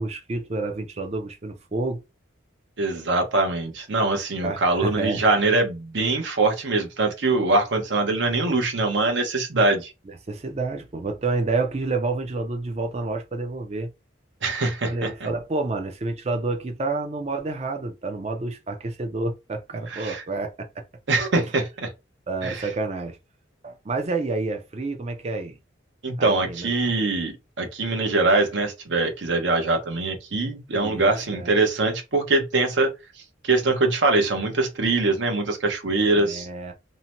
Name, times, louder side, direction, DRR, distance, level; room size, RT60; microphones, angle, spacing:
voice 1, 0.0-2.0 4.4-5.2 10.1-13.9 14.9-20.8 22.3-23.2 23.6-25.6 26.2-26.9 30.7-31.5 36.1-36.7, right 3 dB, 35° right, 0.5 m, -29 dB
voice 2, 2.8-9.9 14.4-15.1 19.9-20.2 21.1-21.9 22.4-22.7 26.0-32.9 33.4-36.5, right 3 dB, 70° right, 0.8 m, -23 dB
2.7 x 2.1 x 2.8 m
head